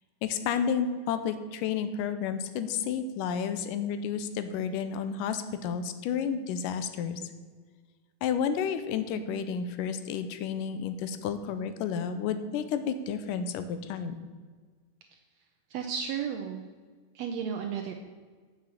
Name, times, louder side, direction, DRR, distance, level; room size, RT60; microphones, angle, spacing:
voice 1, 0.2-7.2 8.2-14.2, left 7 dB, 90° left, 10 dB, 2.3 m, -31 dB
voice 2, 15.7-16.6 17.1-17.9, right 7 dB, 75° right, 4 dB, 1.5 m, -33 dB
7.5 x 6.5 x 7.1 m, 1.5 s
omnidirectional pair, 3.7 m